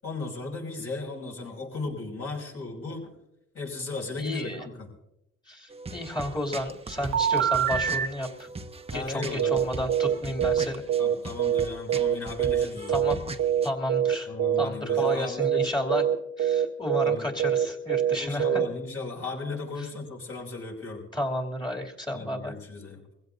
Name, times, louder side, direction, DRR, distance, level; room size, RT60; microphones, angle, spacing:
voice 1, 0.0-3.1 3.5-4.9 8.9-9.5 11.0-13.1 14.3-15.7 17.0-17.3 18.1-21.0 22.1-23.0, left 3 dB, 45° left, 0 dB, 6.0 m, -36 dB
voice 2, 4.2-4.7 5.5-8.5 8.9-10.8 12.9-13.2 13.6-14.3 14.6-16.0 16.4-18.6 19.8-19.9 21.1-22.5, left 1 dB, 15° left, 1 dB, 2.7 m, -32 dB
sound 1, 5.7-13.7, right 3 dB, 20° right, 0.9 m, -39 dB
sound 2, 7.1-8.1 9.4-13.1 13.4-14.1 14.4-14.6 14.9-15.1 15.4-18.7, right 9 dB, 65° right, 1.2 m, -24 dB
23.5 x 16.0 x 2.7 m, 0.82 s
cardioid pair, 90°, 30 cm